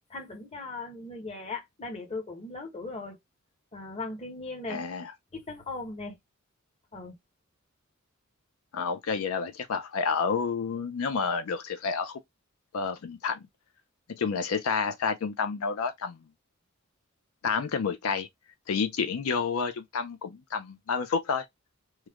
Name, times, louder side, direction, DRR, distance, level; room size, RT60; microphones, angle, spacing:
voice 1, 0.1-3.2 3.7-4.8 5.3-6.2 6.9-7.1, left 3 dB, 30° left, 0.9 m, -38 dB
voice 2, 4.7-5.1 8.7-12.2 12.7-13.4 14.1-16.2 17.4-18.3 18.7-21.5, left 5 dB, 80° left, 0.4 m, -29 dB
3.1 x 2.1 x 3.5 m
head